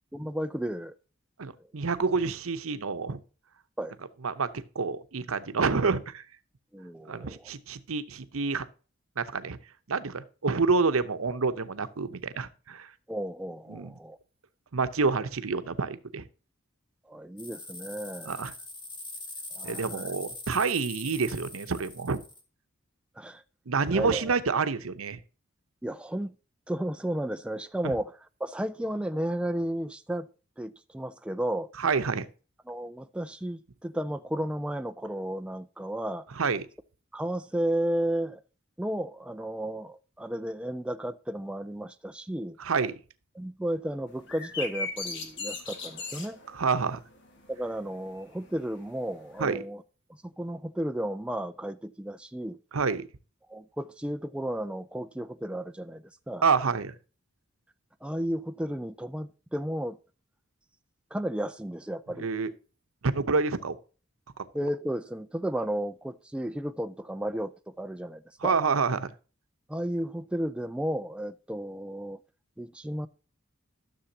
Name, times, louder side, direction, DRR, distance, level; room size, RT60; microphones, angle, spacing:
voice 1, 0.1-0.9 3.8-3.9 6.7-7.5 13.1-14.2 17.1-18.4 19.5-20.1 23.2-23.4 23.9-24.4 25.8-26.3 26.7-28.1 28.4-30.3 30.6-31.7 32.7-36.2 37.1-38.4 38.8-42.6 43.4-46.4 47.5-49.8 50.1-52.6 53.5-56.5 58.0-60.0 61.1-62.3 64.5-68.6 69.7-72.2 72.6-73.1, right 1 dB, 5° right, 0.3 m, -33 dB
voice 2, 1.4-3.2 4.2-4.5 4.7-6.2 7.1-8.7 9.2-9.6 9.9-12.9 13.7-13.9 14.7-16.2 18.2-18.5 19.6-22.2 23.7-25.2 31.8-32.3 36.3-36.7 42.6-42.9 46.5-47.0 49.4-49.6 52.7-53.1 56.4-56.9 62.2-62.5 63.0-63.7 64.4-64.5 68.4-69.1, right 4 dB, 90° right, 0.8 m, -28 dB
sound 1, 17.4-22.4, left 2 dB, 25° left, 1.8 m, -42 dB
sound 2, 44.1-49.5, left 3 dB, 60° left, 1.6 m, -39 dB
13.0 x 6.8 x 2.8 m
head